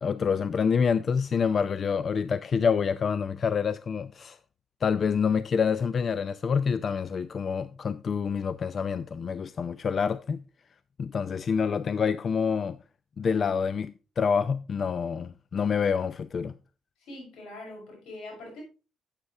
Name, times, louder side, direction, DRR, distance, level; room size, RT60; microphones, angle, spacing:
voice 1, 0.0-4.4 4.8-10.4 11.0-12.8 13.2-16.5, left 6 dB, 50° left, 0.4 m, -27 dB
voice 2, 17.0-18.6, left 1 dB, 85° left, 6.4 m, -43 dB
11.5 x 8.3 x 3.3 m
cardioid pair, 90°, 0 cm